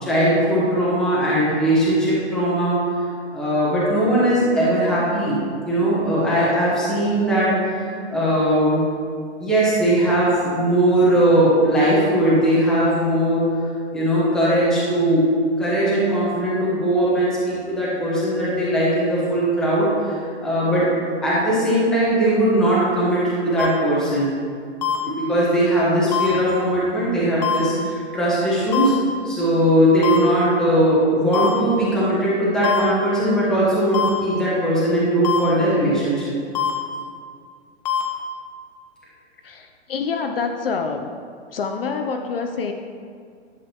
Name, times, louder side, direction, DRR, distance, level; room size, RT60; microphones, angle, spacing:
voice 1, 0.0-2.8 3.3-5.4 5.7-8.8 9.4-13.5 13.9-15.3 15.6-20.9 21.2-24.3 25.0-28.9 29.2-36.3, right 1 dB, ahead, -9 dB, 1.0 m, -19 dB
sound 1, 23.6-23.7 24.8-25.0 26.1-26.3 27.4-27.6 28.7-28.9 30.0-30.2 31.3-31.5 32.6-32.8 33.9-34.1 35.2-35.4 36.5-36.7 37.8-38.0, left 8 dB, 35° left, 1.0 m, -22 dB
voice 2, 39.4-41.1 41.5-42.7, left 5 dB, 55° left, 5 dB, 0.6 m, -26 dB
11.0 x 7.5 x 2.9 m, 2.2 s
hypercardioid pair, 175°, 35 cm